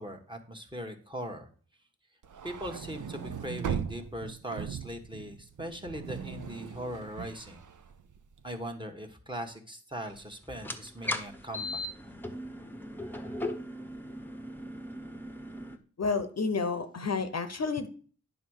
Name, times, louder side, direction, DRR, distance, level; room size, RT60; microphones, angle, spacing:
voice 1, 0.0-1.5 2.4-7.6 8.4-11.8, equal, 15° right, 6 dB, 1.3 m, -40 dB
sound 1, 2.2-8.5, right 7 dB, 70° right, 0.7 m, -39 dB
sound 2, 10.5-15.8, left 1 dB, 5° left, 0.8 m, -38 dB
voice 2, 16.0-17.9, left 4 dB, 55° left, 9 dB, 0.7 m, -30 dB
9.5 x 3.6 x 6.4 m, 0.43 s
wide cardioid pair, 70°, 32 cm